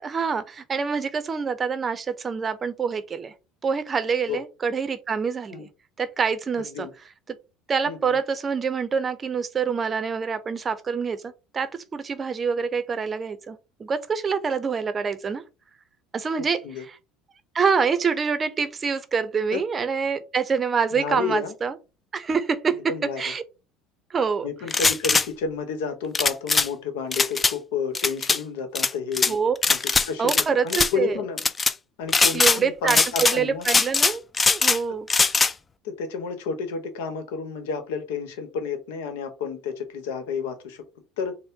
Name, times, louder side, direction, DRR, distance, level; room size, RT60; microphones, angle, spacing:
voice 1, 0.0-3.3 3.6-5.7 6.0-6.9 7.7-15.4 16.1-16.6 17.5-21.8 22.1-22.8 23.2-23.4 24.1-24.5 29.3-29.6 30.2-31.2 32.3-34.2 34.5-35.1, right 5 dB, 30° right, 0.6 m, -26 dB
voice 2, 6.6-6.9 7.9-8.2 16.4-16.8 19.5-19.6 20.9-21.5 22.7-23.2 24.4-29.4 29.7-31.4 32.0-33.7 35.1-35.4 35.8-40.8 41.2-41.4, left 5 dB, 85° left, 1.0 m, -31 dB
sound 1, 24.7-25.3 26.1-26.7 27.1-27.5 27.9-28.4 28.7-29.3 29.6-30.4 30.7-30.9 31.4-31.7 32.1-32.6 32.9-33.4 33.6-34.8 35.1-35.5, left 4 dB, 20° left, 0.3 m, -20 dB
4.2 x 2.1 x 3.6 m
supercardioid pair, 100°, 0 cm